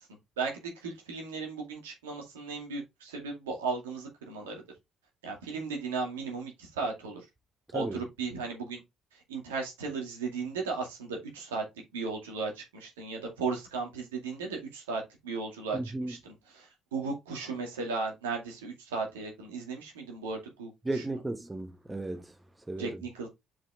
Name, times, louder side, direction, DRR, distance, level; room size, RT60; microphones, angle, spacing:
voice 1, 0.4-4.6 5.2-7.2 7.7-8.8 9.3-11.6 11.9-21.0 22.8-23.3, right 4 dB, 80° right, 2.2 m, -36 dB
voice 2, 15.7-16.1 20.8-22.2 22.7-23.0, right 2 dB, 15° right, 1.3 m, -34 dB
5.9 x 5.1 x 3.6 m
hypercardioid pair, 50°, 0 cm